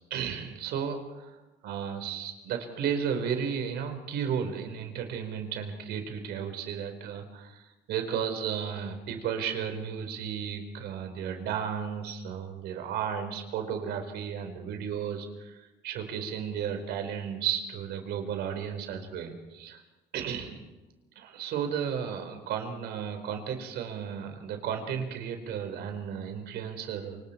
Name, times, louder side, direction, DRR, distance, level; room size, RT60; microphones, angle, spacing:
voice 1, 0.1-1.4 1.6-19.8 20.1-20.6 21.2-27.2, right 7 dB, 80° right, 6 dB, 4.5 m, -34 dB
28.0 x 26.0 x 4.5 m, 1.1 s
cardioid pair, 110°, 17 cm